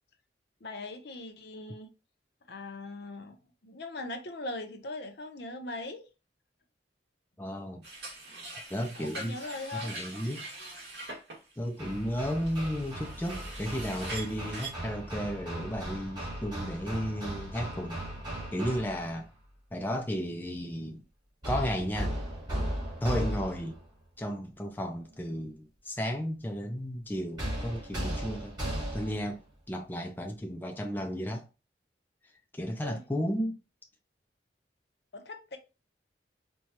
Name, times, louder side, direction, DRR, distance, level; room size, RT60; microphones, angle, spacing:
voice 1, 0.6-1.9 2.5-3.4 3.6-6.1 8.9-9.9 32.8-33.0 35.1-35.6, left 2 dB, 65° left, 0.7 m, -40 dB
voice 2, 7.4-7.8 8.7-9.4 9.8-10.5 11.6-18.0 18.5-19.3 19.7-21.0 21.5-22.2 23.0-23.8 24.2-28.6 28.9-31.5 32.5-33.6, equal, 10° left, 0.4 m, -33 dB
sound 1, 7.8-14.7, right 2 dB, 65° right, 1.6 m, -43 dB
Hammer, 11.8-19.2 21.4-23.8 27.4-29.3, right 1 dB, 25° right, 1.5 m, -36 dB
4.5 x 2.3 x 2.9 m
head